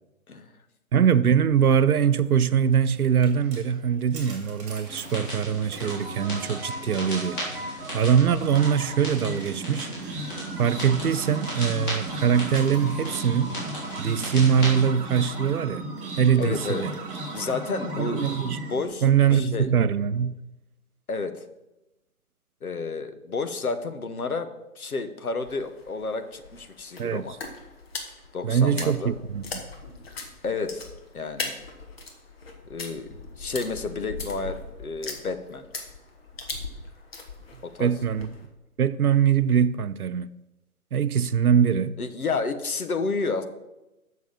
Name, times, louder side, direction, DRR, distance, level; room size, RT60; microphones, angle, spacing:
voice 1, 0.9-10.2 10.6-13.6 14.0-15.9 16.2-16.9 18.0-18.6 19.0-20.4 27.0-27.3 28.4-29.6 37.8-38.3 38.8-40.3 40.9-42.0, right 8 dB, 85° right, 0.6 m, -23 dB
sound 1, 2.6-18.9, right 2 dB, 15° right, 1.9 m, -36 dB
sound 2, 4.9-14.9, equal, 20° left, 3.8 m, -36 dB
voice 2, 16.4-16.8 17.3-18.2 18.7-19.0 19.3-19.7 21.1-21.4 22.6-24.5 24.7-27.3 28.3-29.1 30.4-30.9 31.1-31.5 32.6-33.1 33.4-35.7 37.6-37.9 42.0-43.4, left 4 dB, 75° left, 1.2 m, -30 dB
sound 3, 25.4-38.5, left 3 dB, 40° left, 1.7 m, -40 dB
7.0 x 6.3 x 7.3 m
figure-of-eight pair, 145°, 43 cm